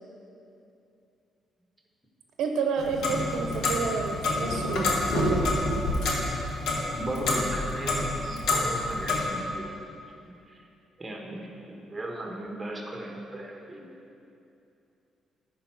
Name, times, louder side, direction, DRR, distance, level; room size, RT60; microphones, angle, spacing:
voice 1, 2.4-5.4, right 5 dB, 80° right, 3 dB, 0.6 m, -30 dB
Clock, 2.8-9.2, left 2 dB, 75° left, 1.3 m, -28 dB
voice 2, 7.0-9.7 10.5-10.7 11.0-13.9, right 1 dB, 15° right, 0 dB, 1.3 m, -36 dB
10.5 x 4.5 x 4.6 m, 2.7 s
cardioid pair, 90°, 0 cm